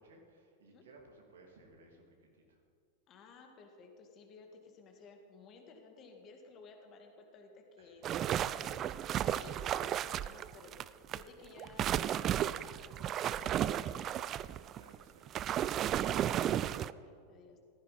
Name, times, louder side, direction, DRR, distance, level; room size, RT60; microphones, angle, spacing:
voice 1, 0.0-2.2 2.5-2.6 7.8-8.3 14.7-17.1, right 2 dB, 65° right, 1 dB, 2.8 m, -61 dB
voice 2, 3.1-14.2 16.8-17.6, left 4 dB, 35° left, 3 dB, 2.1 m, -56 dB
sound 1, 8.0-11.2 11.6-16.9, right 11 dB, 30° right, 0.3 m, -34 dB
15.5 x 14.5 x 4.2 m, 2.2 s
figure-of-eight pair, 90°, 0 cm